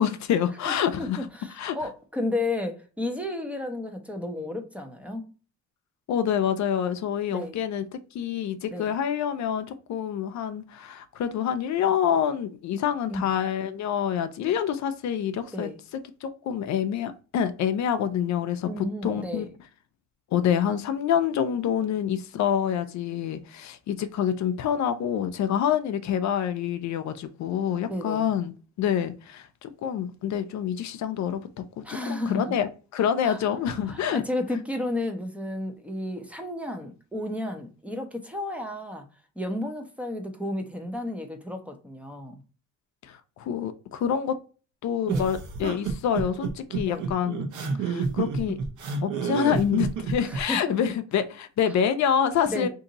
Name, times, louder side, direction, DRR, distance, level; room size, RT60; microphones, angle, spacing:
voice 1, 0.0-1.2 1.6-1.8 6.1-7.8 8.1-15.7 16.2-19.5 20.3-28.5 28.8-31.4 31.8-34.2 43.0-44.4 44.8-47.5 47.8-48.6 49.0-52.7, left 8 dB, 65° left, 0.5 m, -27 dB
voice 2, 0.7-5.3 7.3-7.6 8.7-9.0 13.1-13.3 15.5-15.8 18.6-19.5 27.9-28.3 31.8-32.5 33.2-33.4 33.8-39.1 39.4-42.4 45.1-45.3 46.8-47.1 50.2-50.9 51.6-51.8 52.5-52.7, left 1 dB, 5° right, 0.8 m, -33 dB
sound 1, 45.1-50.4, right 5 dB, 75° right, 1.0 m, -29 dB
2.8 x 2.6 x 3.9 m
cardioid pair, 90°, 30 cm